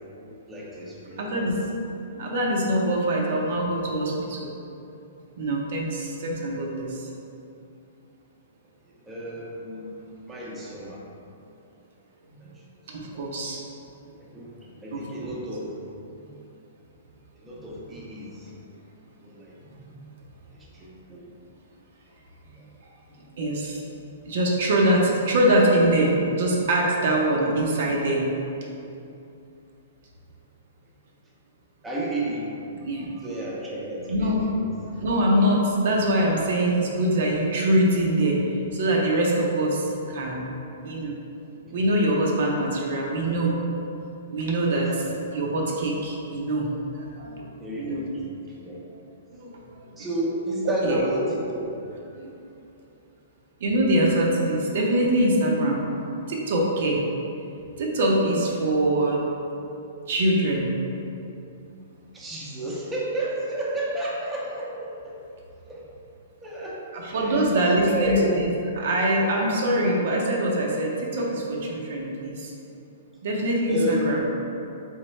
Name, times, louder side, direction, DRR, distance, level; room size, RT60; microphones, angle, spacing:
voice 1, 0.1-1.5 8.8-9.9 10.3-11.0 12.4-12.6 13.1-13.2 14.2-14.5 14.8-15.7 17.4-18.5 19.2-19.5 20.7-21.2 22.5-22.7 31.8-32.6 33.2-34.6 41.6-41.7 44.7-44.9 47.6-48.3 48.6-48.8 50.0-51.7 62.1-65.1 65.7-65.8 66.4-67.5 67.8-68.4 73.7-74.2, right 1 dB, 10° right, -6 dB, 0.6 m, -31 dB
voice 2, 1.2-1.6 2.1-4.5 5.4-7.1 12.9-13.6 14.9-15.3 19.7-20.0 23.4-23.9 24.3-28.3 32.9-33.3 34.1-34.4 35.0-40.4 40.8-41.2 41.7-43.5 44.3-45.0 45.3-46.7 46.9-47.5 47.8-48.0 49.4-49.6 50.8-51.0 52.2-52.3 53.6-56.0 56.3-57.0 57.8-59.2 60.1-60.7 66.9-68.5 68.7-72.5 73.2-74.2, right 1 dB, 65° right, -2 dB, 0.6 m, -23 dB
3.5 x 3.1 x 3.1 m, 2.7 s
hypercardioid pair, 140°, 0 cm